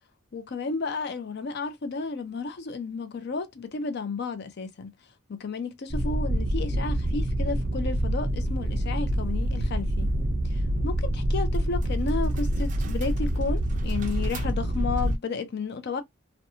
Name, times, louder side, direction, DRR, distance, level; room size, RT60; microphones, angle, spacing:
voice 1, 0.3-4.9 5.4-10.1 10.5-16.0, left 4 dB, 50° left, 0.4 m, -32 dB
sound 1, 5.9-15.2, equal, 35° right, 0.4 m, -26 dB
2.7 x 2.1 x 2.6 m
head